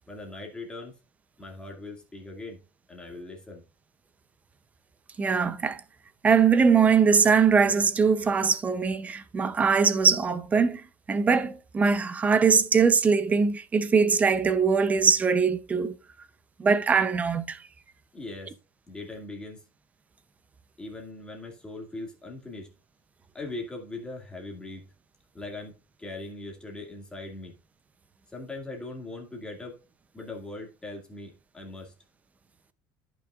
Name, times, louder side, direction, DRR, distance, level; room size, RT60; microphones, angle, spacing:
voice 1, 0.1-0.9 1.4-2.6 2.9-3.6 18.1-18.5 18.9-19.6 20.8-22.7 23.3-24.8 25.3-27.5 28.3-29.8 30.1-31.9, left 2 dB, 10° left, 2.2 m, -40 dB
voice 2, 5.2-5.8 6.2-16.0 16.6-17.6, right 5 dB, 15° right, 0.6 m, -22 dB
14.0 x 6.1 x 2.4 m
cardioid pair, 175°, 9 cm